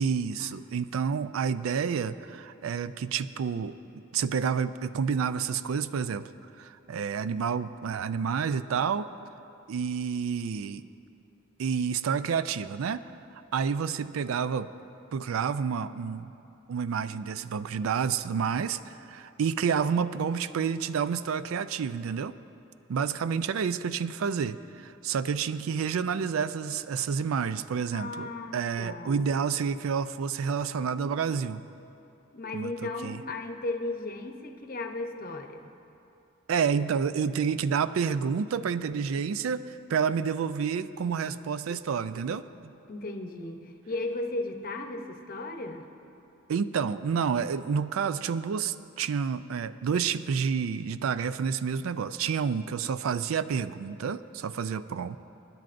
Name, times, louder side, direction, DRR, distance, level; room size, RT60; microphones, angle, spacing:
voice 1, 0.0-6.3 6.6-9.1 9.7-10.8 11.6-13.0 13.5-14.7 15.1-16.3 16.7-22.3 22.9-31.6 32.5-32.7 33.0-33.2 36.5-42.7 46.5-55.2, right 6 dB, 85° right, 14 dB, 0.4 m, -29 dB
voice 2, 27.9-29.3 32.3-35.7 42.9-45.9, left 2 dB, 45° left, 5 dB, 0.8 m, -35 dB
24.5 x 10.5 x 2.5 m, 2.7 s
head